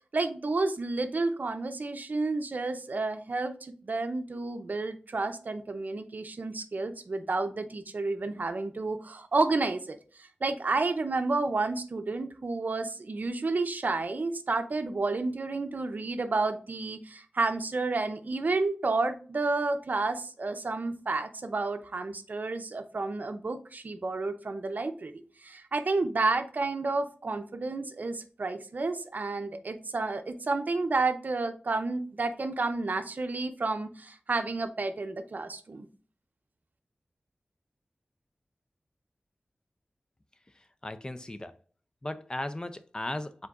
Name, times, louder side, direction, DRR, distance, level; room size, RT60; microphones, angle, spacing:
voice 1, 0.1-25.1 25.4-35.9, right 3 dB, 60° right, 0.5 m, -31 dB
voice 2, 40.6-41.6 42.0-43.5, left 1 dB, 25° left, 0.4 m, -37 dB
4.9 x 3.8 x 2.4 m
wide cardioid pair, 60°, 3 cm